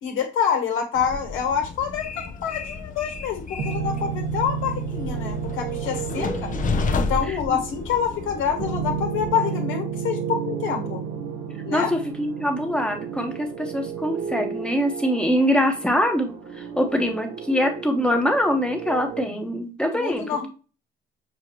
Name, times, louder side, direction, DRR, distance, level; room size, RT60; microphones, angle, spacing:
voice 1, 0.0-6.5 6.9-11.0 11.6-11.9 20.0-20.5, left 7 dB, 85° left, 4 dB, 1.4 m, -26 dB
Train, 0.9-9.3, left 4 dB, 40° left, 0.6 m, -32 dB
sound 1, 3.6-19.2, right 7 dB, 80° right, 0.9 m, -32 dB
voice 2, 11.7-20.5, equal, 5° left, 4 dB, 1.0 m, -24 dB
6.5 x 2.4 x 2.9 m, 0.33 s
cardioid pair, 90°, 20 cm